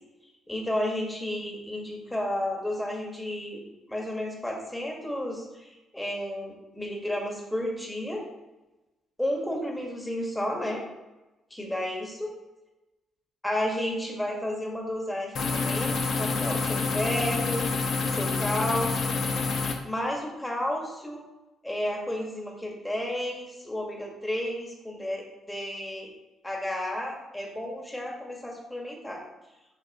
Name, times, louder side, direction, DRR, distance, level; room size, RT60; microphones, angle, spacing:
voice 1, 0.5-3.6 3.9-8.2 9.2-10.8 11.5-12.3 13.4-17.6 18.0-19.2 19.8-21.2 21.6-26.1 26.4-29.2, left 1 dB, 10° left, -1 dB, 1.8 m, -32 dB
sound 1, 15.4-19.7, left 4 dB, 65° left, 1.0 m, -27 dB
7.8 x 5.5 x 3.0 m, 1.0 s
cardioid pair, 90°, 0 cm